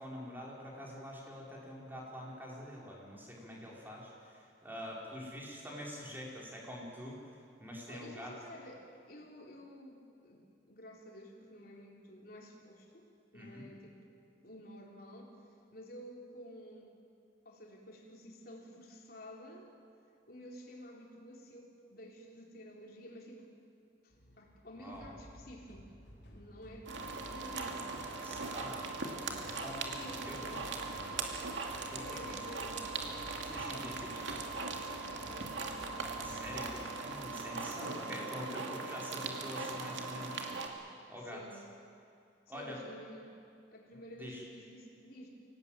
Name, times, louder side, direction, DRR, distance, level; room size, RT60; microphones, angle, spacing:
voice 1, 0.0-7.3 7.6-8.3 13.3-13.6 24.8-25.1 28.2-28.8 29.4-29.9 30.3-30.6 31.9-32.4 33.4-34.2 36.2-40.7 41.1-41.4 42.5-42.8 44.2-44.4, equal, 10° right, -3 dB, 4.7 m, -45 dB
voice 2, 7.9-14.0 14.4-15.4 15.7-16.9 17.4-19.7 20.3-23.5 24.0-25.9 26.3-28.1 29.8-30.8 32.0-33.0 33.4-35.6 37.8-38.2 41.3-41.7 42.5-43.3 43.7-45.3, equal, 50° left, -1 dB, 3.9 m, -51 dB
sound 1, 24.1-37.8, equal, 70° left, 4.5 m, -54 dB
sound 2, 26.9-40.7, right 4 dB, 80° right, 2.5 m, -40 dB
24.5 x 18.0 x 9.1 m, 2.5 s
head